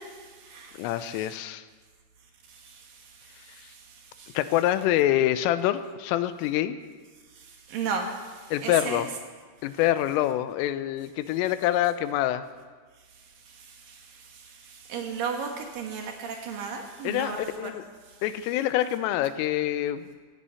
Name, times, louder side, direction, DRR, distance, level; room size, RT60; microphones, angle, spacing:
voice 1, 0.0-1.3 2.5-4.4 7.4-9.1 13.5-17.7, right 5 dB, 70° right, 3 dB, 2.2 m, -36 dB
voice 2, 0.8-1.6 4.3-6.8 8.5-9.1 9.6-12.4 17.0-17.8 18.2-20.2, left 13 dB, 90° left, 12 dB, 3.3 m, -26 dB
15.5 x 15.5 x 5.7 m, 1.5 s
omnidirectional pair, 5.7 m